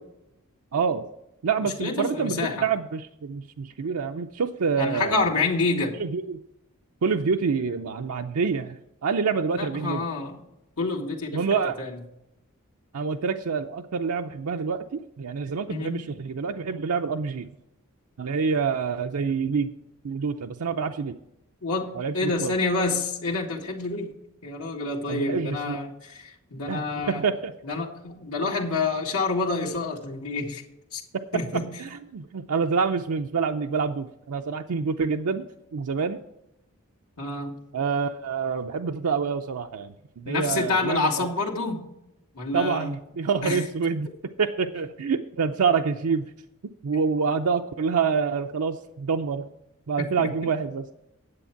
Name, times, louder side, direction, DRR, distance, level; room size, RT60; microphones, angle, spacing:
voice 1, 0.7-1.1 1.4-5.3 6.0-6.4 7.0-10.1 11.3-11.8 12.9-17.5 18.2-19.7 20.0-21.1 22.0-22.5 25.1-25.8 26.7-27.5 31.8-36.2 37.7-41.3 42.5-44.1 44.4-46.3 46.8-49.5 49.9-50.9, right 5 dB, 90° right, 4 dB, 0.5 m, -27 dB
voice 2, 1.8-2.7 4.8-6.0 9.6-10.4 10.8-11.4 11.8-12.0 15.7-16.1 21.6-27.2 27.7-30.6 30.9-31.0 31.3-31.7 37.2-37.5 40.3-41.9 42.3-42.9 43.4-43.6 50.0-50.6, left 3 dB, 90° left, -2 dB, 1.9 m, -28 dB
9.8 x 7.9 x 5.8 m, 0.86 s
head